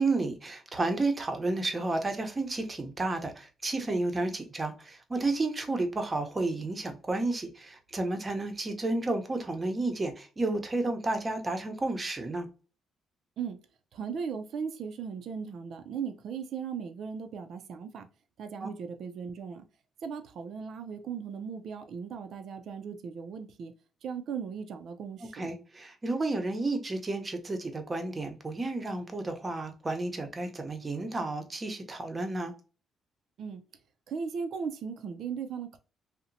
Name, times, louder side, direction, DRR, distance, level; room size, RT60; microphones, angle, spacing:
voice 1, 0.0-12.5 18.6-18.7 25.2-32.5, right 2 dB, 25° right, 0.6 m, -31 dB
voice 2, 13.9-18.1 18.4-19.6 20.0-23.7 24.0-25.5 33.4-33.6 34.1-35.8, right 6 dB, 70° right, 0.4 m, -37 dB
2.8 x 2.1 x 2.5 m
cardioid pair, 90°, 0 cm